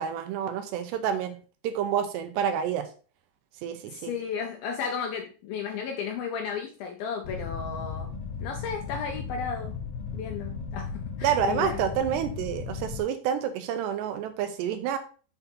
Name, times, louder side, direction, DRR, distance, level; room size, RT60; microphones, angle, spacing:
voice 1, 0.0-1.4 1.6-2.9 3.6-4.1 11.2-15.0, right 8 dB, 85° right, 8 dB, 2.7 m, -28 dB
voice 2, 3.9-8.1 8.4-9.8 10.1-11.8, left 6 dB, 75° left, 3 dB, 2.2 m, -34 dB
sound 1, 7.2-13.0, left 5 dB, 50° left, 2.0 m, -36 dB
7.0 x 4.3 x 5.3 m, 0.38 s
omnidirectional pair, 5.2 m